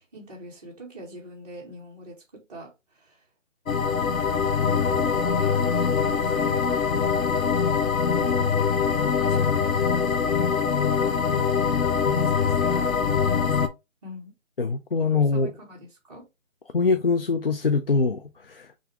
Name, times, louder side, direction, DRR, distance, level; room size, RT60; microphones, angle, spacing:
voice 1, 0.0-3.2 4.6-7.5 8.1-8.4 9.0-10.9 12.1-13.7 14.0-14.3 15.1-16.2, equal, 30° right, 1.7 m, -43 dB
sound 1, 3.7-13.7, left 6 dB, 85° left, 0.9 m, -23 dB
voice 2, 14.6-15.5 16.7-18.8, left 4 dB, 45° left, 0.5 m, -23 dB
6.1 x 2.6 x 3.2 m
figure-of-eight pair, 165°, 40 cm